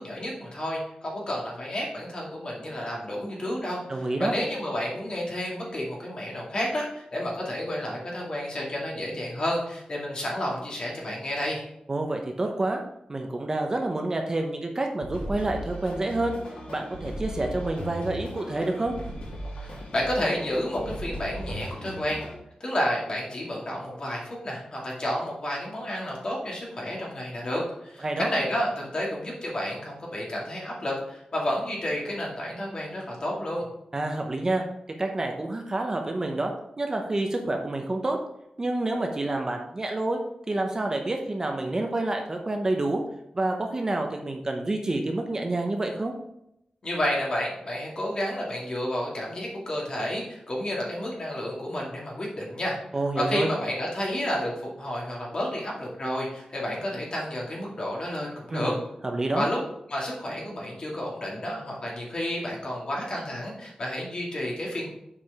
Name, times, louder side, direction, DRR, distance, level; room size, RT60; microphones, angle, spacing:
voice 1, 0.0-3.8 4.2-11.6 19.5-22.2 22.6-33.6 46.8-52.8 53.2-58.7 59.3-59.6 59.9-64.9, left 1 dB, 40° left, -3 dB, 2.4 m, -31 dB
voice 2, 3.9-4.3 11.9-12.8 13.1-16.4 16.7-19.0 28.0-28.3 33.9-34.6 35.0-36.5 36.8-38.2 38.6-40.2 40.5-43.0 43.3-46.1 52.9-53.5 58.5-58.8 59.0-59.5, right 2 dB, 25° right, 3 dB, 0.8 m, -28 dB
sound 1, 15.0-22.3, equal, 90° left, 2.6 m, -37 dB
7.4 x 4.7 x 4.8 m, 0.80 s
wide cardioid pair, 165°, 2 cm